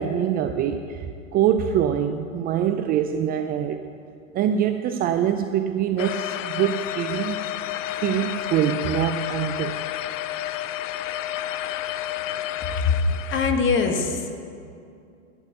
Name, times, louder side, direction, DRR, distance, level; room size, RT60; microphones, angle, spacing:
voice 1, 0.0-3.8 4.3-7.4 8.0-9.8, right 9 dB, 25° right, 8 dB, 0.5 m, -24 dB
sound 1, 6.0-13.5, left 13 dB, 70° left, 0.6 m, -30 dB
voice 2, 12.7-14.4, left 4 dB, 30° left, 5 dB, 1.6 m, -23 dB
12.0 x 9.0 x 7.8 m, 2.4 s
hypercardioid pair, 110°, 39 cm